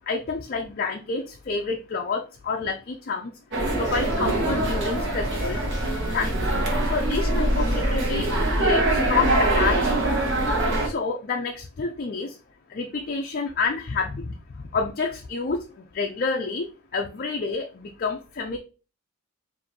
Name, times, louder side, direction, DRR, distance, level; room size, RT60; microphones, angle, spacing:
voice 1, 0.1-3.3 3.8-6.3 6.9-8.3 8.6-8.8 9.1-9.8 10.8-12.4 12.7-14.3 14.7-15.6 15.9-18.6, left 4 dB, 40° left, 2 dB, 0.4 m, -28 dB
sound 1, 3.5-10.9, right 1 dB, 55° right, 1.2 m, -23 dB
4.9 x 2.6 x 2.9 m, 0.33 s
head